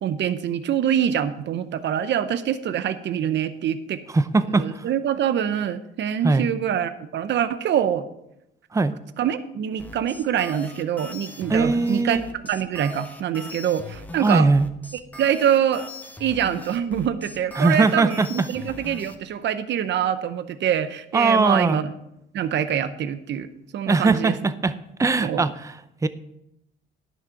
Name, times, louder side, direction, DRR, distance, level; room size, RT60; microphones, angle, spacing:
voice 1, 0.0-4.0 4.5-8.1 9.2-12.2 12.4-14.5 15.2-15.8 16.2-21.9 22.3-24.4 25.2-25.4, right 9 dB, 65° right, 12 dB, 0.7 m, -25 dB
voice 2, 4.1-4.8 6.2-6.5 8.7-8.9 11.5-12.2 14.2-14.7 17.6-18.5 21.1-21.8 23.9-24.7 25.0-25.7 26.0-26.1, right 3 dB, 15° right, 13 dB, 0.6 m, -20 dB
sound 1, 9.8-19.2, left 2 dB, 10° left, 1.2 m, -40 dB
10.5 x 6.5 x 5.8 m, 0.83 s
cardioid pair, 90°, 20 cm